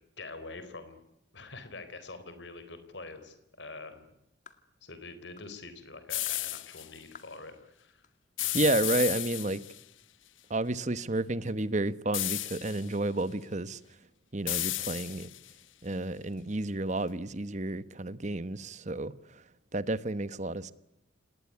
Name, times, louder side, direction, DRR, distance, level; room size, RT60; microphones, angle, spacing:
voice 1, 0.2-1.0 1.3-4.1 4.8-8.0 8.4-8.6, left 3 dB, 65° left, 4.0 m, -45 dB
sound 1, 4.5-4.7 5.4-5.6 6.3-6.4 7.1-7.4 8.0-8.1 8.9-9.1, left 6 dB, 40° left, 2.0 m, -52 dB
sound 2, 6.1-6.9 8.4-9.8 12.1-12.9 14.5-15.5, left 16 dB, 85° left, 0.9 m, -33 dB
voice 2, 8.5-9.6 10.5-13.8 14.3-15.3 15.8-19.1 19.7-20.7, right 2 dB, 40° right, 1.1 m, -31 dB
28.5 x 20.0 x 9.7 m
head